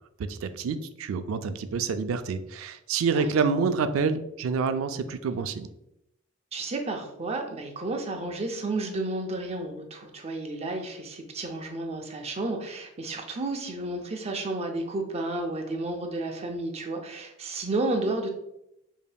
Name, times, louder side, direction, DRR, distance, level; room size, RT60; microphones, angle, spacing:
voice 1, 0.3-5.7, right 5 dB, 80° right, 10 dB, 0.3 m, -27 dB
voice 2, 6.5-18.3, right 2 dB, 30° right, 3 dB, 0.5 m, -32 dB
5.1 x 2.7 x 2.2 m, 0.83 s
head